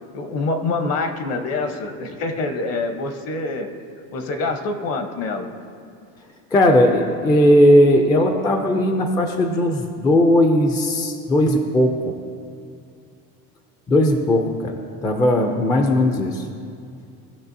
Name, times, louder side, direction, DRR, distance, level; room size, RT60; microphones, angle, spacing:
voice 1, 0.1-3.7 4.1-5.5, left 3 dB, 50° left, 6 dB, 0.9 m, -25 dB
voice 2, 6.5-12.1 13.9-16.5, left 1 dB, 10° left, 3 dB, 0.4 m, -17 dB
18.0 x 6.2 x 2.7 m, 2.4 s
cardioid pair, 160°, 33 cm